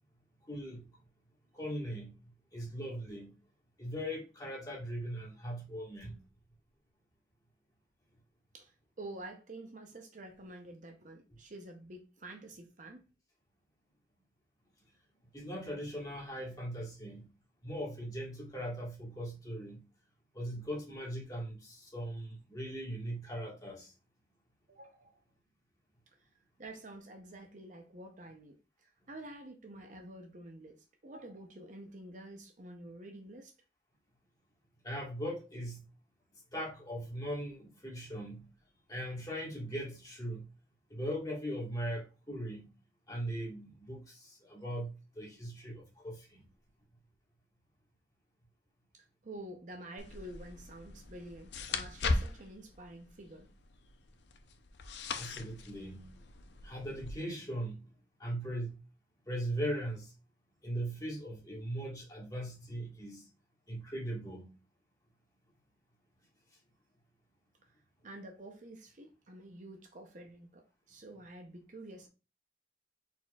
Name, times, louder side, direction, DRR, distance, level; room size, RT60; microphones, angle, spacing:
voice 1, 0.5-0.9 1.5-2.1 2.5-3.3 3.8-6.2 15.3-17.3 17.6-19.8 20.3-23.9 34.8-35.8 36.5-38.5 38.9-40.5 40.9-42.7 43.1-44.9 45.1-46.5 55.2-56.1 56.6-57.9 58.2-58.7 59.3-60.1 60.6-63.2 63.7-64.5, equal, 20° left, 1.5 m, -39 dB
voice 2, 8.5-13.1 24.7-25.2 26.6-33.5 48.9-53.5 68.0-72.1, right 1 dB, 45° right, 0.7 m, -49 dB
sound 1, 50.0-57.1, left 3 dB, 65° left, 0.5 m, -39 dB
4.3 x 4.2 x 2.3 m
head